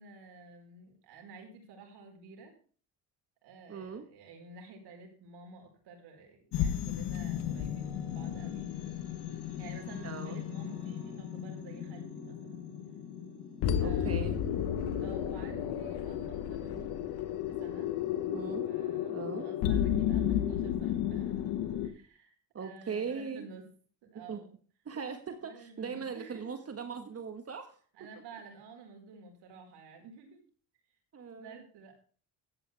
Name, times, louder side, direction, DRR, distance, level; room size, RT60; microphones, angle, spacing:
voice 1, 0.0-2.5 3.4-8.7 9.6-12.6 13.8-14.5 15.0-17.0 17.3-17.9 18.5-21.5 21.8-22.3 22.6-23.7 24.1-24.5 25.4-26.5 27.9-30.4 31.3-31.9, right 4 dB, 80° right, 2 dB, 4.8 m, -51 dB
voice 2, 3.7-4.0 10.0-10.4 13.8-14.3 18.3-18.7 19.1-19.4 22.5-23.5 24.3-24.4 24.8-27.8 31.1-31.5, right 6 dB, 40° right, 7 dB, 1.6 m, -39 dB
sound 1, 6.4-17.5, right 1 dB, 10° right, 7.1 m, -54 dB
sound 2, 6.5-21.9, left 10 dB, 90° left, 1.4 m, -33 dB
13.5 x 9.0 x 3.5 m, 0.42 s
cardioid pair, 105°, 39 cm